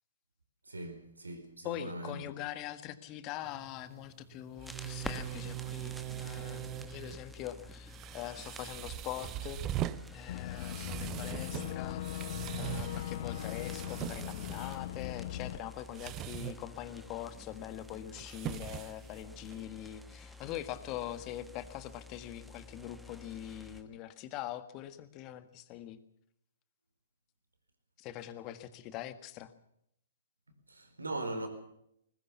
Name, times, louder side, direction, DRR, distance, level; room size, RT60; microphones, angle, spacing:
voice 1, 0.6-2.2 30.7-31.5, right 2 dB, 80° right, 4.6 m, -40 dB
voice 2, 1.6-9.6 10.1-26.0 28.0-29.5, left 12 dB, 30° left, 1.6 m, -43 dB
sound 1, 3.4-19.6, right 13 dB, 25° right, 0.8 m, -42 dB
sound 2, 4.6-23.8, left 1 dB, ahead, 1.3 m, -50 dB
Boat Water vehicle / Engine, 10.3-15.6, left 12 dB, 50° left, 0.8 m, -39 dB
20.5 x 20.5 x 7.1 m
figure-of-eight pair, 120°, 0 cm